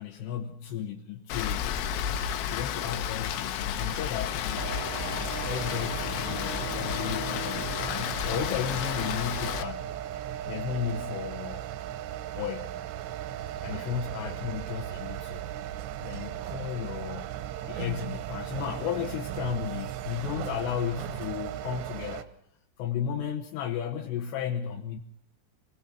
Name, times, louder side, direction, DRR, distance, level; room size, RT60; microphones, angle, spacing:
voice 1, 0.0-1.8 2.5-4.7 5.4-9.9 10.5-11.7 12.3-12.9 13.6-15.4 16.0-17.3 17.7-22.3 22.8-25.0, left 8 dB, 70° left, 2 dB, 2.9 m, -34 dB
Rain, 1.3-9.6, left 9 dB, 85° left, 3.8 m, -32 dB
sound 1, 4.6-22.2, right 11 dB, 75° right, 2.8 m, -37 dB
24.5 x 19.0 x 5.9 m, 0.72 s
omnidirectional pair, 5.7 m